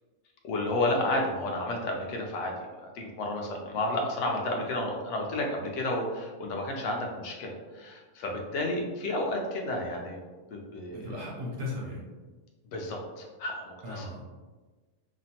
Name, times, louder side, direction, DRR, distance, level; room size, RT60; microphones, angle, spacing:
voice 1, 0.4-10.2 10.5-11.0 12.7-14.1, left 1 dB, 65° left, 1 dB, 0.8 m, -31 dB
voice 2, 10.9-12.0 13.8-14.2, left 2 dB, 60° right, -3 dB, 0.6 m, -36 dB
2.9 x 2.0 x 2.7 m, 1.3 s
omnidirectional pair, 1.6 m